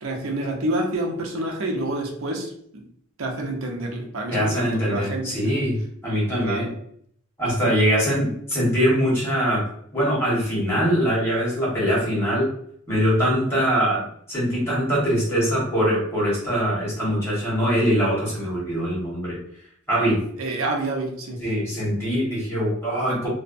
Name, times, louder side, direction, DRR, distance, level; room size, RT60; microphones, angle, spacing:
voice 1, 0.0-2.8 3.2-5.6 6.4-6.7 13.5-13.6 20.4-21.5, right 1 dB, 85° right, 1 dB, 0.6 m, -28 dB
voice 2, 4.3-6.7 7.4-12.5 12.9-19.4 19.9-20.2 21.4-23.3, equal, 15° left, -7 dB, 1.3 m, -23 dB
2.6 x 2.1 x 2.6 m, 0.64 s
head